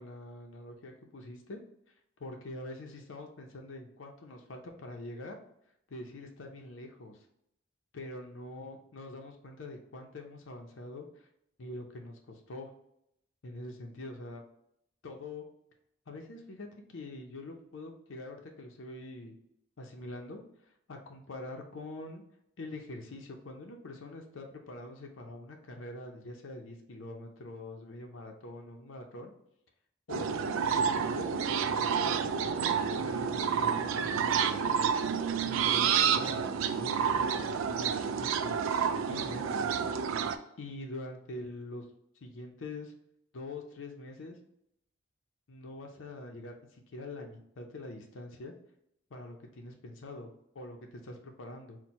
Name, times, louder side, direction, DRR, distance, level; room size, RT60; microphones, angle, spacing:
voice 1, 0.0-1.6 2.2-5.4 5.9-7.3 7.9-11.3 11.6-12.7 13.4-14.4 15.0-15.5 16.1-19.3 19.8-20.4 20.9-22.2 22.6-29.3 30.1-32.1 32.5-34.9 35.4-38.6 39.1-39.8 40.6-41.8 42.2-42.9 43.3-44.4 45.5-48.5 49.1-50.3 50.5-51.8, left 2 dB, 80° left, 2 dB, 0.6 m, -44 dB
sound 1, 30.1-40.4, right 7 dB, 85° right, 0.3 m, -29 dB
4.4 x 2.2 x 4.1 m, 0.74 s
head